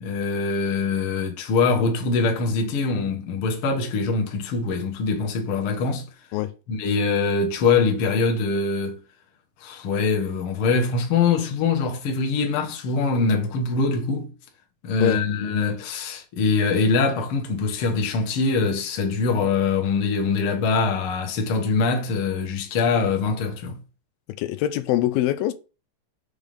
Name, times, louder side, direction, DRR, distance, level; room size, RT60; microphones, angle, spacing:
voice 1, 0.0-6.0 6.7-9.0 9.6-14.3 14.8-23.8, left 4 dB, 65° left, 1.4 m, -23 dB
voice 2, 24.4-25.5, left 13 dB, 85° left, 2.3 m, -23 dB
6.3 x 3.5 x 5.1 m
omnidirectional pair, 4.2 m